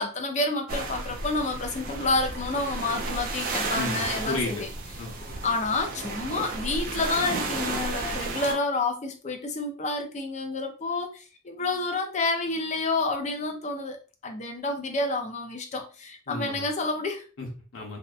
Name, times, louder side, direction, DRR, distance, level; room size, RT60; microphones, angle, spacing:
voice 1, 0.0-4.7 5.4-14.0 14.2-17.3, left 3 dB, 35° left, 4 dB, 0.4 m, -29 dB
sound 1, 0.7-8.5, right 3 dB, 45° right, 0.4 m, -33 dB
voice 2, 3.7-4.6 5.0-5.4 16.3-16.6 17.4-18.0, left 2 dB, 90° left, 0 dB, 0.9 m, -33 dB
2.7 x 2.1 x 2.3 m, 0.35 s
head